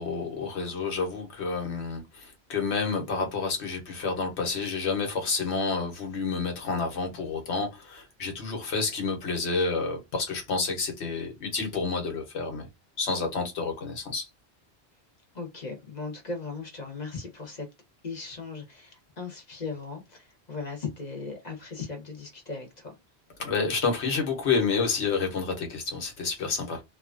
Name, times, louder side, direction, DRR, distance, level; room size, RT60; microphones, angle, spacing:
voice 1, 0.0-12.7 13.0-14.3 23.4-26.8, left 4 dB, 80° left, 1.3 m, -29 dB
voice 2, 15.3-17.7 18.0-22.9, left 4 dB, 40° left, 1.0 m, -38 dB
2.7 x 2.4 x 2.5 m
omnidirectional pair, 1.1 m